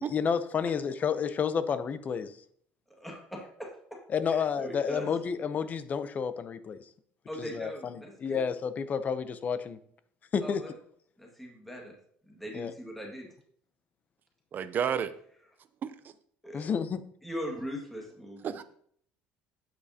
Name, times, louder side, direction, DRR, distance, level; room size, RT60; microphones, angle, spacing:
voice 1, 0.1-2.4 4.1-6.8 7.4-9.8 10.3-10.6 12.5-12.7 16.5-17.0, left 6 dB, 35° left, 12 dB, 0.7 m, -30 dB
voice 2, 2.9-5.1 7.3-8.4 10.4-10.7 11.2-12.0 12.3-13.3 16.4-16.7 17.2-18.5, equal, 5° left, -1 dB, 2.0 m, -40 dB
voice 3, 14.5-15.1 15.8-16.1 18.4-18.6, right 8 dB, 40° right, 12 dB, 0.6 m, -31 dB
8.8 x 8.4 x 2.8 m, 0.64 s
cardioid pair, 120°, 5 cm